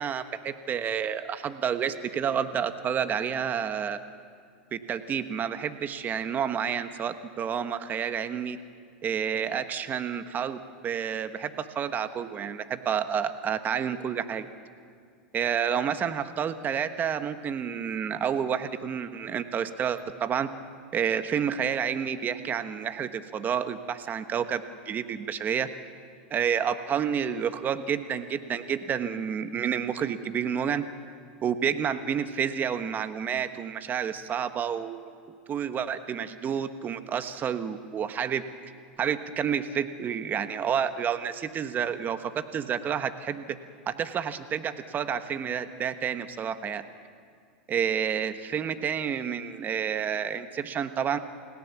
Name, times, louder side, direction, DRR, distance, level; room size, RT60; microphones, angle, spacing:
voice 1, 0.0-4.0 4.7-8.6 9.0-14.5 15.3-20.5 20.9-25.7 26.3-30.8 31.4-35.2 35.5-38.4 39.0-43.4 43.9-46.8 47.7-51.2, right 8 dB, 30° right, 10 dB, 1.3 m, -29 dB
29.5 x 17.0 x 7.2 m, 2.2 s
hypercardioid pair, 105°, 6 cm